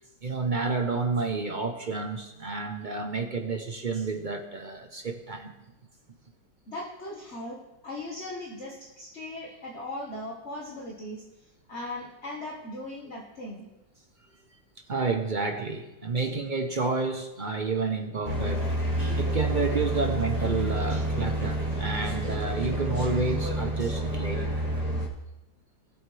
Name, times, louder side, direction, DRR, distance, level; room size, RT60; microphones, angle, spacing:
voice 1, 0.2-5.5 14.9-24.5, right 4 dB, 40° right, 4 dB, 0.7 m, -30 dB
voice 2, 6.7-11.2 11.7-13.7, left 1 dB, 40° left, -2 dB, 1.7 m, -38 dB
sound 1, 18.2-25.1, right 1 dB, 20° right, 2.0 m, -29 dB
19.5 x 7.9 x 3.4 m, 0.98 s
omnidirectional pair, 1.9 m